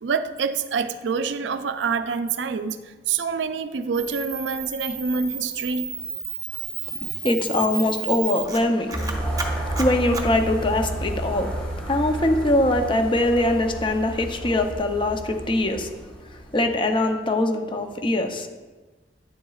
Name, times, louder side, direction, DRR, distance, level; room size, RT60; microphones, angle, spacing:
voice 1, 0.0-2.8 3.1-5.9, right 5 dB, 85° right, 10 dB, 0.4 m, -26 dB
Camera, 3.9-11.1, right 5 dB, 20° right, 0.7 m, -33 dB
voice 2, 7.2-8.9 9.8-11.6 11.9-15.9 16.5-18.5, left 1 dB, 30° left, 6 dB, 0.6 m, -22 dB
sound 1, 8.9-16.8, right 1 dB, 5° left, 1.7 m, -31 dB
9.1 x 6.9 x 2.4 m, 1.2 s
head